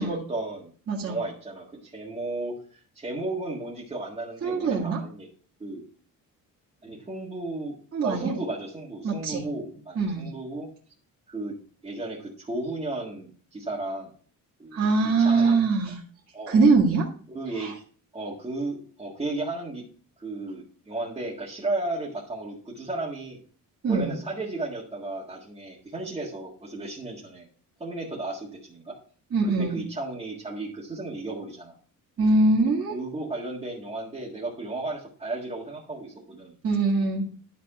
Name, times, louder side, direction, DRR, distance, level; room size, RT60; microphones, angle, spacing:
voice 1, 0.0-0.7 1.0-5.3 5.6-5.8 6.8-7.7 8.0-10.7 11.3-11.6 11.8-14.1 14.6-14.9 15.2-15.6 16.3-16.6 17.3-17.8 18.1-19.8 20.2-23.4 23.9-27.5 27.8-28.9 29.6-31.7 32.9-36.5, right 2 dB, 15° right, -7 dB, 1.7 m, -34 dB
voice 2, 0.9-1.2 4.4-5.0 7.9-8.3 9.0-9.4 10.0-10.3 14.7-16.0 16.5-17.1 17.6-17.7 23.8-24.2 29.3-29.8 32.2-32.9 36.6-37.3, right 3 dB, 40° right, -5 dB, 2.0 m, -22 dB
11.5 x 4.1 x 4.8 m, 0.44 s
cardioid pair, 160°, 34 cm